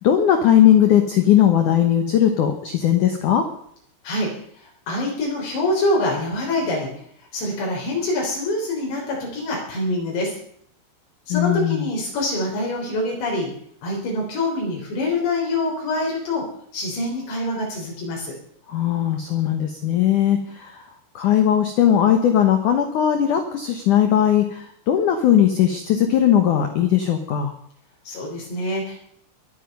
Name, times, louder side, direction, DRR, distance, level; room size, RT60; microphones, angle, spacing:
voice 1, 0.0-3.4 11.3-11.8 18.7-20.8 21.2-27.5, left 10 dB, 90° left, 6 dB, 1.7 m, -18 dB
voice 2, 4.6-6.9 7.3-10.3 11.3-13.5 13.8-16.4 16.7-18.3 28.1-29.0, left 1 dB, 65° left, -2 dB, 5.7 m, -25 dB
23.0 x 9.1 x 5.4 m, 0.64 s
omnidirectional pair, 5.5 m